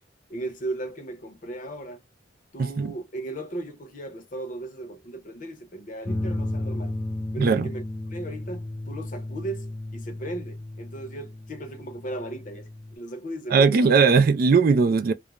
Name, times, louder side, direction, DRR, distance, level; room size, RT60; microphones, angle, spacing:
voice 1, 0.3-2.0 2.5-6.9 7.3-7.8 8.1-13.9, right 2 dB, 45° left, 0.7 m, -36 dB
voice 2, 2.6-2.9 7.4-7.7 13.5-15.1, right 5 dB, 55° right, 0.3 m, -19 dB
sound 1, 6.1-13.0, left 1 dB, 20° left, 0.4 m, -34 dB
2.4 x 2.0 x 2.9 m
head